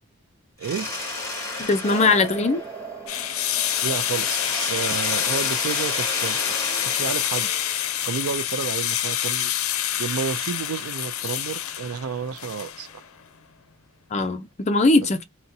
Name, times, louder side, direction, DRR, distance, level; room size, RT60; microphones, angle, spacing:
Mechanisms, 0.6-3.2 3.6-8.4, left 2 dB, 15° left, 1.8 m, -32 dB
voice 1, 0.6-0.9 3.8-7.5 8.0-9.5 10.0-13.0, right 6 dB, 85° right, 0.4 m, -31 dB
voice 2, 1.6-2.6 14.1-15.2, left 3 dB, 30° left, 0.5 m, -20 dB
sound 1, 1.8-6.3, right 4 dB, 15° right, 0.6 m, -39 dB
sound 2, 3.1-13.1, left 11 dB, 85° left, 0.5 m, -27 dB
3.9 x 2.1 x 2.6 m
head